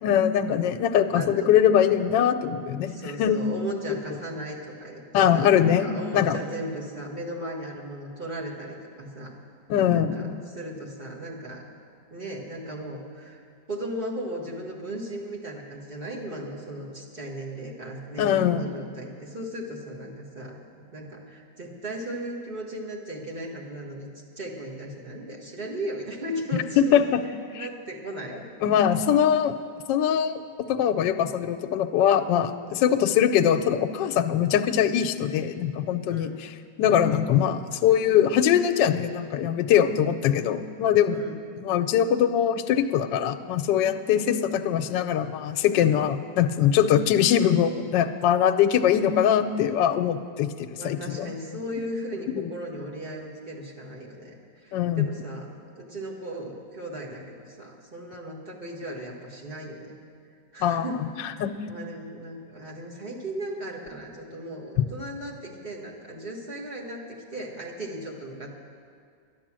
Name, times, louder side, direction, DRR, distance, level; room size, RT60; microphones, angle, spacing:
voice 1, 0.0-3.4 5.1-6.4 9.7-10.3 18.2-18.6 26.8-27.2 27.5-27.7 28.6-29.5 29.9-30.4 30.7-36.3 36.8-41.2 41.6-51.3 51.8-51.9 54.7-55.1 60.6-60.8 61.4-61.6, left 9 dB, 80° left, 7 dB, 1.2 m, -22 dB
voice 2, 1.1-1.5 2.8-9.3 9.9-11.6 12.1-13.4 13.7-20.6 20.9-24.1 24.4-27.0 27.5-28.5 28.7-28.8 32.8-32.9 36.1-36.4 41.1-41.4 44.1-44.2 50.7-60.0 60.5-67.0 67.3-68.5, right 1 dB, 30° right, -3 dB, 1.8 m, -36 dB
11.5 x 10.0 x 7.4 m, 2.1 s
omnidirectional pair, 2.0 m